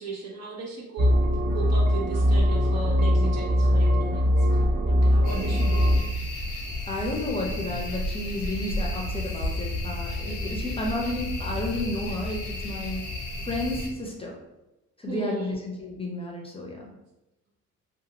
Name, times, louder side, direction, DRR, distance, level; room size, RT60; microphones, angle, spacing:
voice 1, 0.0-5.8 15.1-15.6, right 3 dB, 55° right, -3 dB, 0.9 m, -36 dB
sound 1, 1.0-6.0, equal, 30° right, 0.5 m, -21 dB
sound 2, 5.2-13.9, left 1 dB, 85° left, 0.7 m, -32 dB
voice 2, 6.9-13.0 13.4-14.4 15.0-16.9, left 1 dB, 20° left, -1 dB, 0.6 m, -32 dB
2.6 x 2.4 x 2.9 m, 0.97 s
cardioid pair, 90°, 30 cm